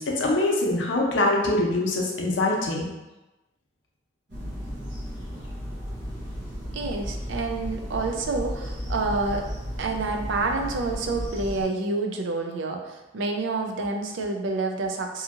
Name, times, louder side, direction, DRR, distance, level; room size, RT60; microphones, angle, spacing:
voice 1, 0.0-2.9, left 2 dB, 85° left, -1 dB, 0.6 m, -24 dB
sound 1, 4.3-11.7, equal, 65° right, 1.1 m, -34 dB
voice 2, 6.7-9.4 9.8-15.2, right 3 dB, 85° right, 3 dB, 0.4 m, -28 dB
2.8 x 2.6 x 2.4 m, 1.1 s
head